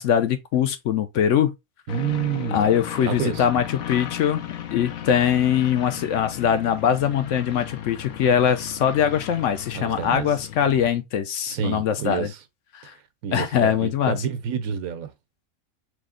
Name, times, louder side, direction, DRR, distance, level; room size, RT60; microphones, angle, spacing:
voice 1, 0.0-1.5 2.5-4.4 4.7-12.3 12.7-12.9 13.3-14.2, left 9 dB, 65° left, 0.9 m, -22 dB
sound 1, 1.9-10.9, left 10 dB, 85° left, 1.1 m, -36 dB
voice 2, 1.9-2.7 3.0-3.4 9.7-10.3 11.5-12.4 12.8-12.9 13.2-15.1, right 8 dB, 80° right, 1.2 m, -28 dB
3.5 x 3.2 x 3.6 m
omnidirectional pair, 1.5 m